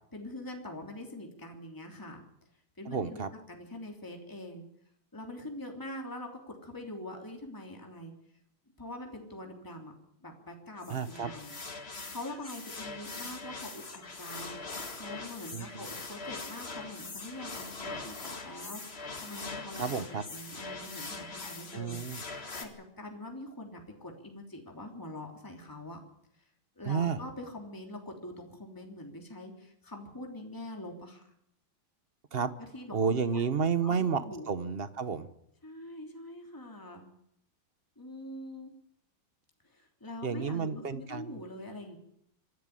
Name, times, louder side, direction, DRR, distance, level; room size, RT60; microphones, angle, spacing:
voice 1, 0.1-2.2 2.8-4.6 5.1-8.1 8.8-9.9 10.2-22.0 22.6-26.0 26.8-31.2 32.6-33.4 33.8-34.5 35.6-37.0 38.0-38.7 39.6-42.0, left 1 dB, 10° left, 2 dB, 3.1 m, -44 dB
voice 2, 2.9-3.3 10.9-11.3 15.5-15.9 19.8-20.2 21.7-22.2 26.8-27.2 32.3-32.5 32.9-35.3 40.2-41.4, right 6 dB, 40° right, 12 dB, 0.9 m, -31 dB
sound 1, 10.8-22.6, left 3 dB, 30° left, 2.2 m, -42 dB
26.0 x 11.5 x 9.8 m, 0.74 s
omnidirectional pair, 2.3 m